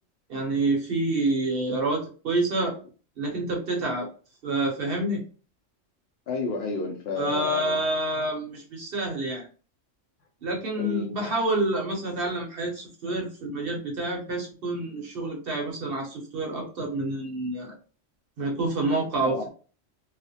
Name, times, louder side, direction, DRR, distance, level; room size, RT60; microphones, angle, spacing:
voice 1, 0.3-2.7 3.2-4.1 4.4-5.2 7.1-9.4 10.4-17.7 18.4-19.5, right 2 dB, 55° right, 0.7 m, -28 dB
voice 2, 6.3-7.8 10.8-11.3 19.2-19.5, left 4 dB, 65° left, 0.7 m, -31 dB
2.4 x 2.0 x 2.6 m
omnidirectional pair, 1.3 m